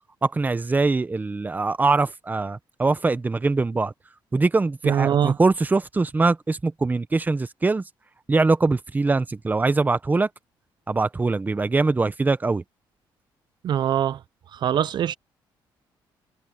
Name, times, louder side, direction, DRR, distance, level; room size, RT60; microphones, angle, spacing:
voice 1, 0.2-3.9 4.3-7.8 8.3-10.3 10.9-12.6, right 3 dB, 20° right, 1.0 m, -22 dB
voice 2, 4.8-5.3 13.6-14.2 14.5-15.2, right 9 dB, 60° right, 0.5 m, -22 dB
cardioid pair, 105°, 9 cm